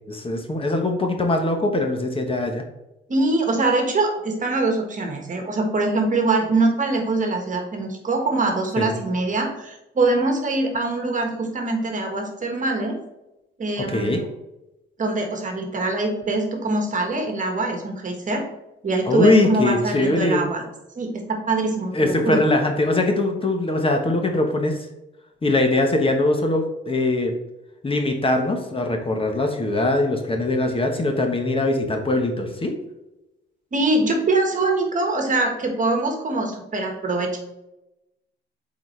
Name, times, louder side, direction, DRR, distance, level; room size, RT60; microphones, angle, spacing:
voice 1, 0.1-2.6 8.8-8.9 13.9-14.2 19.1-20.5 21.9-24.8 25.4-27.3 27.8-32.7, left 2 dB, 25° left, 4 dB, 1.1 m, -21 dB
voice 2, 3.1-13.0 13.6-14.3 15.0-18.4 18.8-20.6 21.0-22.4 33.7-37.4, right 2 dB, 40° right, 3 dB, 1.5 m, -23 dB
7.7 x 4.2 x 3.2 m, 0.95 s
cardioid pair, 90°, 20 cm